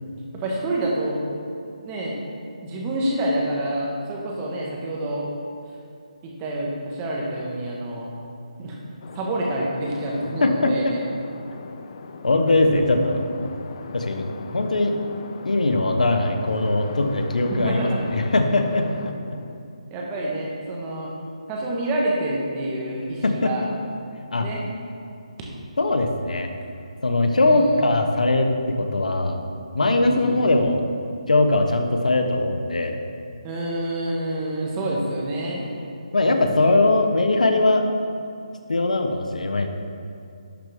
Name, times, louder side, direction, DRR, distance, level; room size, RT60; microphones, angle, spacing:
voice 1, 0.3-1.2 1.8-2.2 2.6-5.2 6.2-8.1 8.6-8.8 9.1-11.0 12.6-13.2 17.4-18.0 19.9-21.1 21.5-23.6 24.4-24.6 27.4-27.9 30.1-30.4 33.4-35.6, right 1 dB, 20° right, -3 dB, 1.4 m, -27 dB
sound 1, 9.0-19.6, left 5 dB, 45° left, 0.5 m, -40 dB
voice 2, 10.4-10.7 12.2-13.2 13.9-15.0 15.4-19.4 23.2-23.5 24.3-24.5 25.8-26.5 27.0-28.5 28.8-29.4 29.7-30.8 31.3-33.0 36.1-37.8 38.7-39.7, left 2 dB, 80° left, 5 dB, 1.0 m, -21 dB
11.5 x 6.4 x 3.6 m, 2.5 s
figure-of-eight pair, 160°, 4 cm